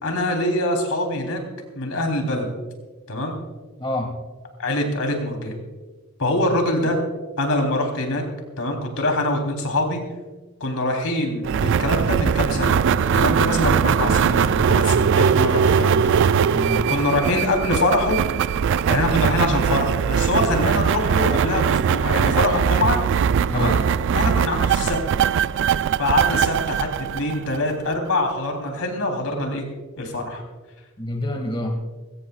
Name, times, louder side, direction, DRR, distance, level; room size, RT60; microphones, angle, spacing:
voice 1, 0.0-1.4 1.8-2.5 3.1-3.4 4.6-5.6 6.2-7.0 7.4-8.2 8.6-10.0 10.6-16.0 16.9-18.2 18.9-23.0 23.5-23.8 24.1-25.0 26.0-29.7 30.0-30.4, left 1 dB, 70° left, 3 dB, 3.4 m, -24 dB
voice 2, 3.8-4.2 16.5-16.9 23.5-23.9 31.0-31.8, left 1 dB, 20° left, 3 dB, 2.0 m, -27 dB
sound 1, 11.4-27.9, right 7 dB, 55° right, 0.3 m, -20 dB
22.0 x 17.0 x 2.4 m, 1.3 s
head